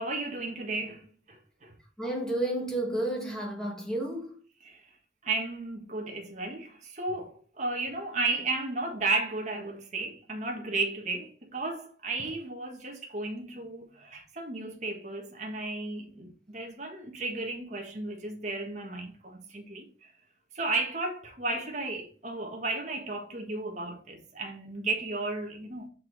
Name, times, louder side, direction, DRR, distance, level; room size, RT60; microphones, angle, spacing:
voice 1, 0.0-1.7 4.6-4.8 5.2-20.1 20.5-25.9, right 3 dB, 45° right, 1.5 m, -34 dB
voice 2, 2.0-4.4, right 1 dB, 5° left, 2.1 m, -31 dB
6.5 x 5.4 x 4.0 m
head